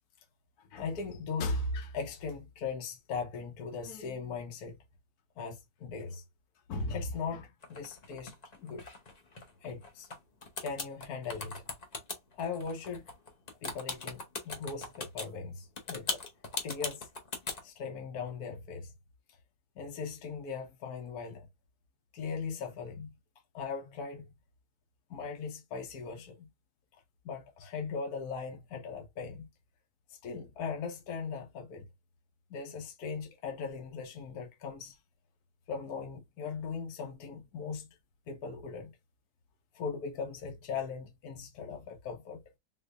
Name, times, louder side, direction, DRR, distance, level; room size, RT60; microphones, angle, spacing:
voice 1, 0.7-4.8 5.4-6.2 6.7-8.3 8.6-8.8 9.6-10.1 10.6-11.6 12.3-13.1 13.6-16.2 16.6-17.1 17.6-18.9 19.8-21.5 22.1-23.1 23.5-24.3 25.1-26.5 27.2-29.5 30.1-31.9 32.5-35.0 35.7-37.9 38.3-38.9 39.7-42.4, left 4 dB, 60° left, 1.2 m, -38 dB
sound 1, 7.6-10.2 10.4-15.3 15.8-17.6, left 3 dB, 40° left, 0.5 m, -39 dB
3.9 x 3.1 x 2.5 m
omnidirectional pair, 2.0 m